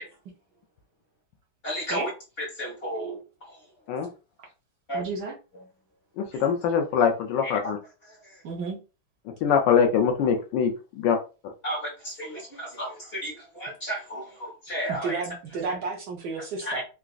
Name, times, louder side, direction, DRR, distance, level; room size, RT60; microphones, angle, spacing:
voice 1, 1.6-2.1 2.4-3.2 4.9-5.0 7.4-7.5 11.6-15.2 16.6-16.8, equal, 40° left, -2 dB, 1.0 m, -33 dB
voice 2, 4.9-5.3 8.4-8.8 14.9-16.8, right 4 dB, 65° right, -1 dB, 1.2 m, -32 dB
voice 3, 6.2-7.8 9.4-10.7 11.0-11.2, left 7 dB, 75° left, 4 dB, 1.1 m, -23 dB
3.9 x 2.4 x 2.3 m, 0.32 s
omnidirectional pair, 2.1 m